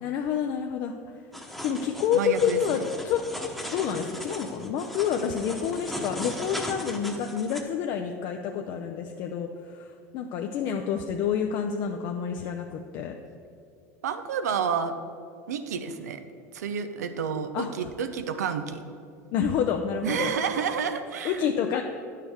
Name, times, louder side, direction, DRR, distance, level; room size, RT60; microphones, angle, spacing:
voice 1, 0.0-0.9 1.6-3.2 3.7-13.2 17.5-17.9 19.3-20.3 21.2-21.8, left 8 dB, 55° left, 3 dB, 0.5 m, -28 dB
sound 1, 1.3-7.6, equal, ahead, 1.0 m, -37 dB
voice 2, 2.1-2.8 14.0-14.9 15.5-16.2 16.5-18.8 20.0-21.4, right 6 dB, 85° right, 9 dB, 0.6 m, -29 dB
9.7 x 6.5 x 3.5 m, 2.5 s
hypercardioid pair, 85°, 9 cm